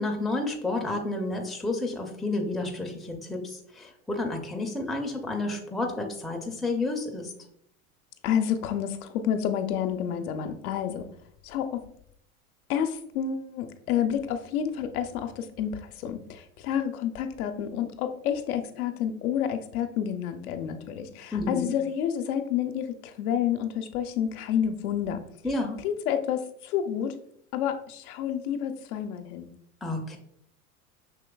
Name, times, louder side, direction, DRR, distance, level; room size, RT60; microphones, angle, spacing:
voice 1, 0.0-7.3 21.3-21.6 25.4-25.8 29.8-30.2, left 2 dB, ahead, 1 dB, 0.5 m, -30 dB
voice 2, 8.2-11.1 11.4-11.8 12.7-25.2 25.8-27.1 27.5-29.5, left 9 dB, 75° left, 6 dB, 0.7 m, -29 dB
5.9 x 3.1 x 2.2 m, 0.69 s
hypercardioid pair, 90°, 44 cm